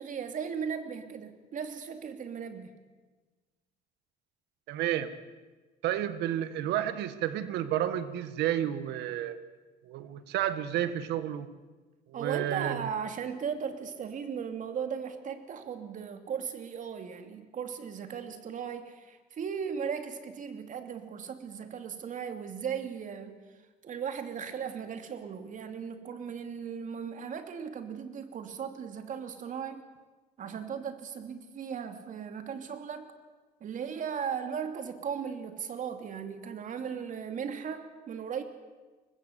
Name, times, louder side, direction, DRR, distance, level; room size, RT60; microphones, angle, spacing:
voice 1, 0.0-2.7 12.1-23.4 23.8-29.8 30.4-33.1 33.6-38.4, right 7 dB, 50° right, 7 dB, 2.8 m, -37 dB
voice 2, 4.7-5.1 5.8-9.4 9.8-11.5 12.1-12.9, right 11 dB, 85° right, 12 dB, 1.7 m, -31 dB
24.0 x 20.0 x 8.3 m, 1.3 s
cardioid pair, 110°, 17 cm